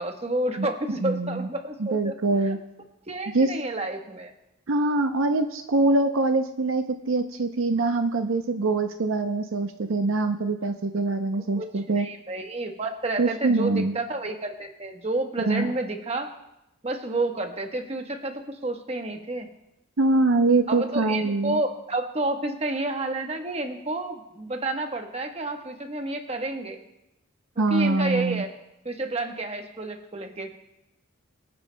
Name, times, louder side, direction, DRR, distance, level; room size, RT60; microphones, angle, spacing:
voice 1, 0.0-2.1 2.5-2.6 3.0-4.3 11.6-16.3 16.8-19.5 20.7-26.9 27.6-28.5 28.8-30.6, right 2 dB, 30° right, 4 dB, 1.1 m, -30 dB
voice 2, 1.0-1.5 1.8-2.6 3.3-3.5 4.7-12.1 13.2-13.9 15.4-15.7 20.0-21.6 27.6-28.4, right 2 dB, 65° right, 7 dB, 0.6 m, -24 dB
24.5 x 9.6 x 2.2 m, 0.88 s
head